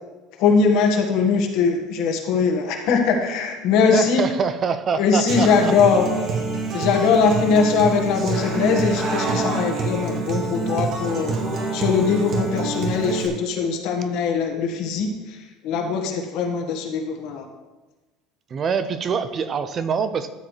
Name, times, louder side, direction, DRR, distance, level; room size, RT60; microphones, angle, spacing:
voice 1, 0.4-4.2 5.0-6.1 6.7-11.3 11.7-17.4, left 5 dB, 65° left, 2 dB, 1.6 m, -21 dB
voice 2, 3.9-5.7 6.7-6.8 18.5-20.3, right 6 dB, 35° right, 11 dB, 0.5 m, -25 dB
Human voice / Acoustic guitar, 5.3-13.3, right 3 dB, 50° right, 1.8 m, -26 dB
12.5 x 7.3 x 3.3 m, 1.2 s
cardioid pair, 130°, 0 cm